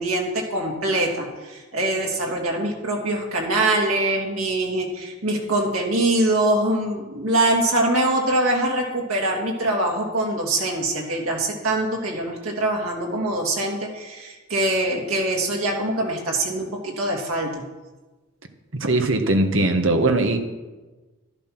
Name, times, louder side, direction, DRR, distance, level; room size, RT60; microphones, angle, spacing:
voice 1, 0.0-17.6, right 1 dB, 90° right, -1 dB, 3.0 m, -23 dB
voice 2, 18.8-20.4, right 2 dB, 65° right, 6 dB, 1.4 m, -20 dB
12.0 x 11.5 x 6.0 m, 1.2 s
head